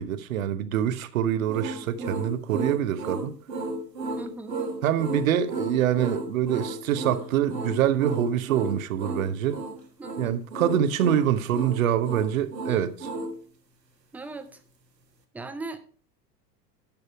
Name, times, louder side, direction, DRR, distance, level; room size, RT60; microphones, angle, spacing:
voice 1, 0.0-3.3 4.8-9.6 10.2-13.1, right 10 dB, 55° right, 1.0 m, -25 dB
sound 1, 1.5-13.4, right 2 dB, 80° right, 1.6 m, -34 dB
voice 2, 2.0-2.3 4.1-4.6 10.0-10.4 12.7-12.8 14.1-14.5 15.3-15.9, right 2 dB, 5° right, 0.5 m, -39 dB
10.5 x 6.7 x 4.7 m
figure-of-eight pair, 85°, 49 cm